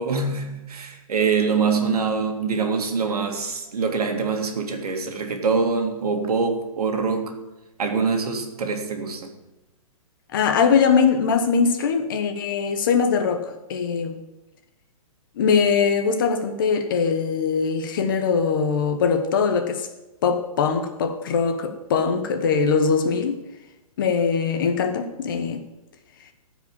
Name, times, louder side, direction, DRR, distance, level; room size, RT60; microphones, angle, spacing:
voice 1, 0.0-7.3 7.8-9.3, right 5 dB, 85° right, 2.1 m, -24 dB
voice 2, 10.3-14.2 15.4-19.9 20.2-23.4 24.0-25.6, left 5 dB, 35° left, 1.1 m, -21 dB
13.5 x 5.2 x 7.3 m
hypercardioid pair, 175°, 19 cm